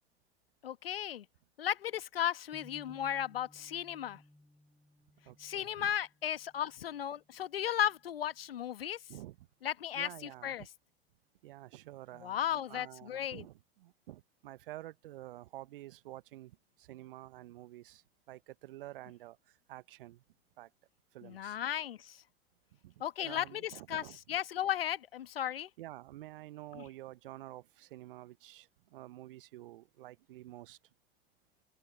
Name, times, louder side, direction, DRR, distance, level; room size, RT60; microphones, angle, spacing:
voice 1, 0.6-1.2 1.6-4.2 5.4-9.0 9.6-10.7 12.2-13.5 21.2-22.2 23.0-25.7 26.7-26.9, left 10 dB, 75° left, 1.3 m, -35 dB
sound 1, 2.5-8.6, left 1 dB, 5° left, 4.9 m, -62 dB
voice 2, 5.3-5.9 9.1-9.3 9.9-10.5 11.4-13.5 14.1-16.5 16.9-18.0 18.3-19.4 19.7-20.2 20.6-20.7 21.1-21.6 23.2-24.2 25.8-28.6 28.9-30.8, right 15 dB, 65° right, 1.1 m, -49 dB
open air
figure-of-eight pair, 75°, 30 cm